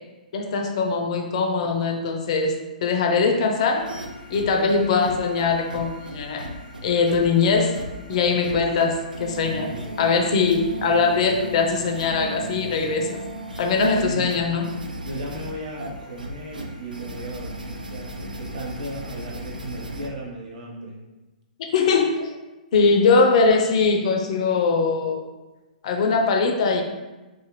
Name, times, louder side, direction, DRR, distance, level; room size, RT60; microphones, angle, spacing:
voice 1, 0.3-3.9 4.3-6.5 6.8-7.8 8.1-9.7 10.0-13.2 13.6-14.7 21.6-22.3 22.7-25.2 25.8-26.8, left 4 dB, 50° left, 3 dB, 0.4 m, -21 dB
sound 1, 3.7-20.1, right 1 dB, 85° right, 0.4 m, -36 dB
voice 2, 14.0-14.3 15.0-21.0, right 1 dB, 55° right, -3 dB, 0.8 m, -36 dB
2.5 x 2.4 x 3.0 m, 1.1 s
figure-of-eight pair, 115°, 4 cm